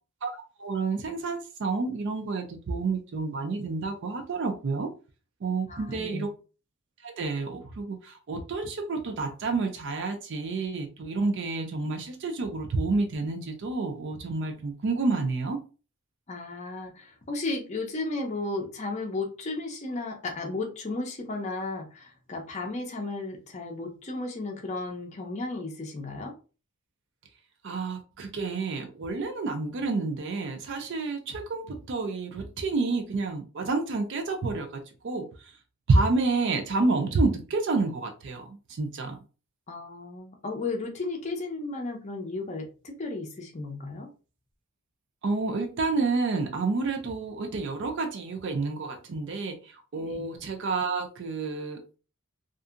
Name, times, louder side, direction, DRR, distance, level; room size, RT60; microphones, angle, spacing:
voice 1, 0.6-4.9 5.4-6.4 7.0-15.6 27.6-35.3 35.9-39.2 45.2-52.0, right 3 dB, 55° right, 5 dB, 0.4 m, -29 dB
voice 2, 5.7-6.3 16.3-26.3 39.7-44.1 50.0-50.2, left 3 dB, 30° left, 1 dB, 0.5 m, -34 dB
2.6 x 2.4 x 2.4 m, 0.35 s
head